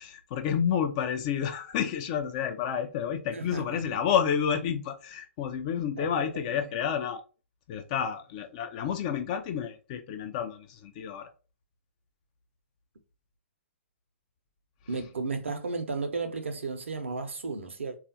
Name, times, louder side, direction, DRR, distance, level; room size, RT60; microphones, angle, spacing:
voice 1, 0.0-7.2 7.7-11.3, left 8 dB, 35° left, 0.4 m, -30 dB
voice 2, 3.3-4.0 6.0-6.4 14.9-18.0, right 4 dB, 75° right, 0.7 m, -34 dB
3.5 x 2.4 x 2.6 m
figure-of-eight pair, 120°, 7 cm